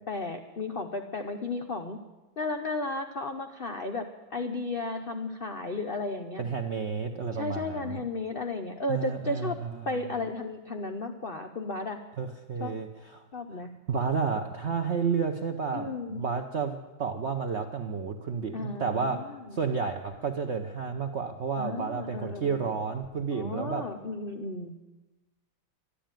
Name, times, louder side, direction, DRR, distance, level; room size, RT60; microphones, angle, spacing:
voice 1, 0.0-2.0 2.4-6.4 7.3-9.6 9.9-12.0 12.6-12.8 13.3-13.7 15.7-16.2 18.5-19.6 21.6-22.7 23.3-24.7, left 3 dB, 65° left, 5 dB, 0.5 m, -34 dB
voice 2, 6.4-8.0 8.9-10.1 12.2-13.2 13.9-23.9, right 5 dB, 65° right, 5 dB, 0.6 m, -31 dB
11.5 x 11.5 x 9.0 m, 1.1 s
omnidirectional pair, 2.1 m